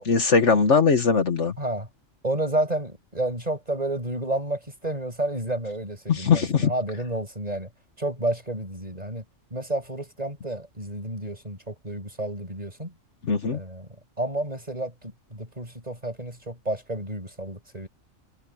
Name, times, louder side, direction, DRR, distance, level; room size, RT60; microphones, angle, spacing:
voice 1, 0.0-1.5 6.1-6.7 13.3-13.6, left 5 dB, 60° left, 1.6 m, -20 dB
voice 2, 1.6-1.9 2.2-7.7 8.0-9.2 9.5-12.9 13.5-13.9 14.2-17.9, right 1 dB, 30° right, 7.4 m, -30 dB
omnidirectional pair, 1.4 m